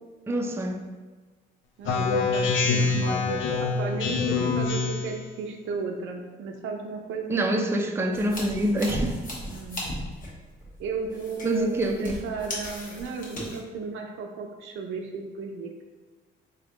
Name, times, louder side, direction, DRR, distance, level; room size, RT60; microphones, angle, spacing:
voice 1, 0.3-0.8 7.3-9.2 11.4-12.2, right 1 dB, 10° right, 2 dB, 0.4 m, -26 dB
Speech synthesizer, 1.8-5.2, left 4 dB, 75° left, 0.5 m, -25 dB
voice 2, 1.8-3.0 3.6-7.4 9.5-9.8 10.8-15.7, right 4 dB, 80° right, 3 dB, 0.6 m, -35 dB
sound 1, 8.1-13.6, left 1 dB, 45° left, 1.2 m, -36 dB
3.6 x 3.3 x 2.9 m, 1.3 s
cardioid pair, 90°, 20 cm